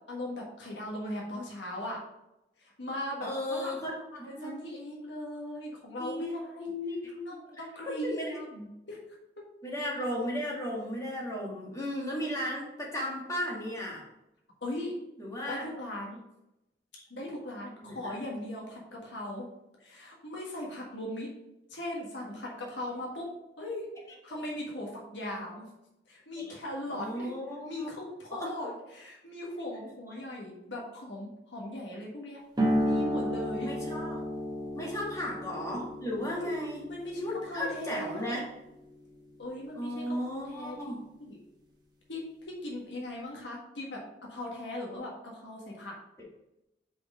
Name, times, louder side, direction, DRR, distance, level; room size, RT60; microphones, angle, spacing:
voice 1, 0.1-2.0 2.6-3.7 4.1-6.7 7.2-9.0 14.6-14.9 15.5-16.2 17.1-19.5 19.8-21.3 21.7-23.2 23.6-23.8 24.2-25.7 26.1-27.3 27.6-32.4 32.8-33.7 34.8-35.0 36.3-36.5 36.8-38.4 39.4-40.9 41.2-41.4 42.1-42.2 42.6-44.0 44.3-45.9, left 1 dB, 85° left, -2 dB, 1.5 m, -39 dB
voice 2, 3.2-4.5 6.0-6.3 6.6-7.2 7.9-8.4 9.6-14.0 15.2-15.7 17.0-17.1 17.8-18.1 26.4-26.5 26.9-27.9 28.3-28.5 33.6-34.2 34.8-36.8 37.2-38.4 39.7-41.0, left 1 dB, 20° left, -3 dB, 1.8 m, -35 dB
sound 1, 32.6-39.7, equal, 25° right, 1.1 m, -34 dB
5.2 x 5.0 x 4.9 m, 0.88 s
head